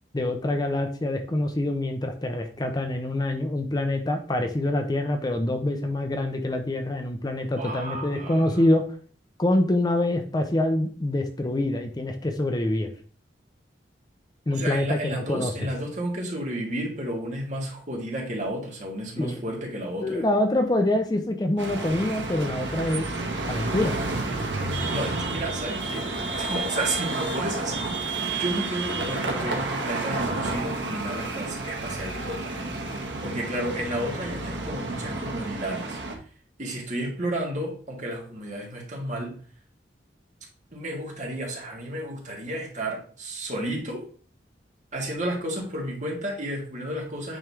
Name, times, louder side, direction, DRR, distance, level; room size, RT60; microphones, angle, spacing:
voice 1, 0.1-8.9 9.4-12.9 14.5-15.5 19.2-19.4 20.0-23.1 23.5-24.0, left 1 dB, 25° left, 5 dB, 0.6 m, -25 dB
voice 2, 7.5-8.6 14.5-20.2 24.9-26.0 26.3-36.0 36.6-39.3 40.7-44.0 44.9-47.4, right 1 dB, 45° right, -1 dB, 1.8 m, -32 dB
sound 1, 21.6-36.2, right 3 dB, 85° right, 1.1 m, -30 dB
8.9 x 3.2 x 3.5 m, 0.43 s
head